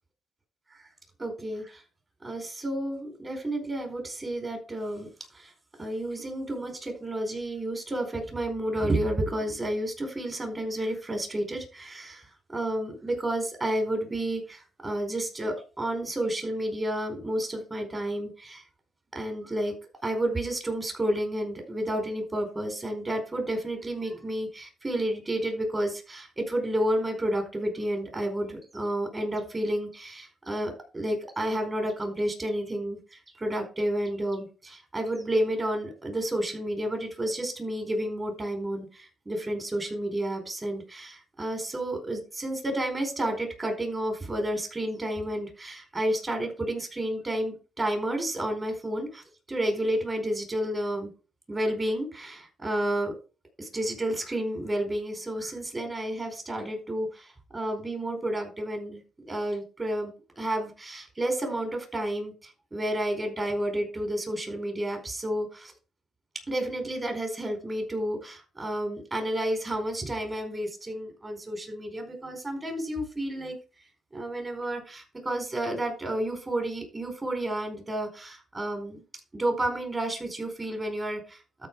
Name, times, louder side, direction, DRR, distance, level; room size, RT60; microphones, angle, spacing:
voice 1, 1.2-1.8 2.2-5.1 5.3-5.5 5.8-12.2 12.5-18.6 19.1-19.7 20.0-51.1 51.5-53.1 53.6-59.0 59.3-65.7 66.5-73.6 74.1-79.0 79.3-81.7, right 1 dB, 20° right, 4 dB, 4.6 m, -31 dB
13.0 x 4.9 x 4.7 m, 0.34 s
cardioid pair, 90°, 0 cm